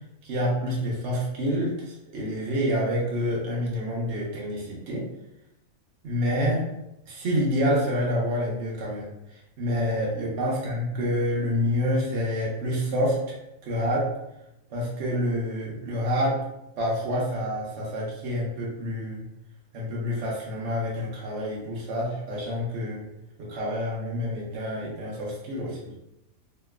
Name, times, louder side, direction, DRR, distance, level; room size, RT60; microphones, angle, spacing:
voice 1, 0.2-5.0 6.0-6.7 7.1-13.4 13.7-14.1 14.7-16.4 16.8-19.2 19.7-23.0 23.4-25.9, equal, 60° right, -5 dB, 1.0 m, -28 dB
3.0 x 2.9 x 2.3 m, 0.88 s
omnidirectional pair, 1.5 m